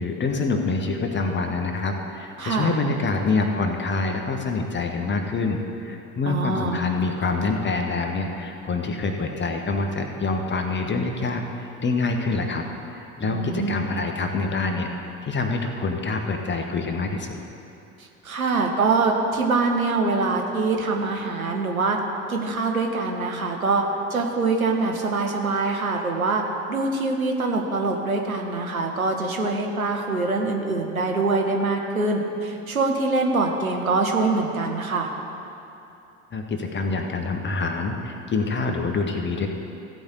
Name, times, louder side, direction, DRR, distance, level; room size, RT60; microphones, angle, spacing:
voice 1, 0.0-12.6 12.9-17.4 36.3-39.5, left 3 dB, 25° left, 4 dB, 1.4 m, -26 dB
voice 2, 2.4-2.8 6.3-6.8 13.2-13.8 18.0-22.0 22.3-23.8 24.1-26.4 26.7-35.1, right 3 dB, 85° right, 2 dB, 1.2 m, -24 dB
15.5 x 5.3 x 8.2 m, 2.8 s
figure-of-eight pair, 65°, 41 cm